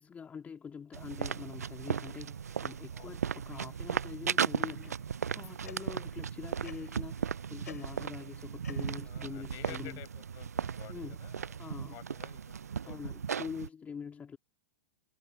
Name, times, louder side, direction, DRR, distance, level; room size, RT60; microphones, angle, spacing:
voice 1, 0.0-10.0 10.9-11.2 11.6-12.0 12.8-14.4, left 6 dB, 20° left, 2.8 m, -45 dB
sound 1, 0.9-13.7, right 7 dB, 90° right, 0.4 m, -36 dB
sound 2, 4.8-6.2 6.6-7.1 7.6-8.3 8.6-10.3, left 7 dB, 85° left, 5.3 m, -53 dB
voice 2, 9.0-12.6 12.8-13.1, left 25 dB, 45° left, 5.3 m, -52 dB
hypercardioid pair, 110°, 8 cm